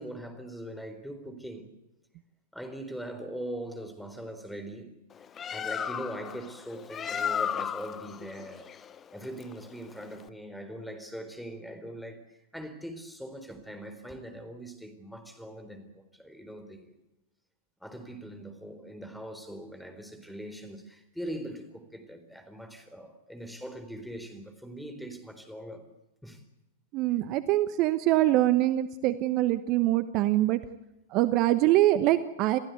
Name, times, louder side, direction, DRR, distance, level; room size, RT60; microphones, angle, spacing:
voice 1, 0.0-1.7 2.5-4.9 5.5-8.7 9.1-17.0 17.8-25.9 26.2-26.4, right 1 dB, ahead, 4.2 m, -41 dB
Bird, 5.1-10.3, left 8 dB, 25° left, 0.9 m, -35 dB
voice 2, 26.9-30.6 31.1-32.6, right 15 dB, 40° right, 1.1 m, -24 dB
28.5 x 15.5 x 8.3 m
figure-of-eight pair, 105°, 0 cm